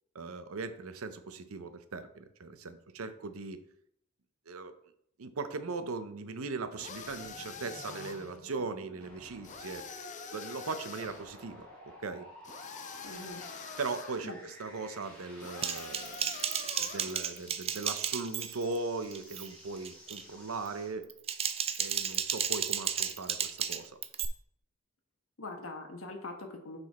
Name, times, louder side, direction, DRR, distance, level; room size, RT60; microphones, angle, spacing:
voice 1, 0.1-3.6 4.5-4.7 5.2-9.8 10.3-12.3 13.8-16.3 16.8-21.1 21.8-24.0, right 3 dB, 75° right, 10 dB, 0.7 m, -39 dB
sound 1, 6.8-8.4 9.4-11.2 12.4-14.3 15.4-17.2, left 5 dB, 35° left, 0.6 m, -45 dB
sound 2, 7.0-21.0, equal, 10° left, 3.0 m, -53 dB
voice 2, 13.0-13.4 14.2-14.4 25.4-26.8, left 2 dB, 65° left, 3 dB, 1.3 m, -42 dB
Typing, 15.6-18.8 19.1-19.5 19.8-20.2 21.0-24.2, right 8 dB, 30° right, 0.4 m, -33 dB
5.9 x 5.3 x 4.2 m, 0.69 s
head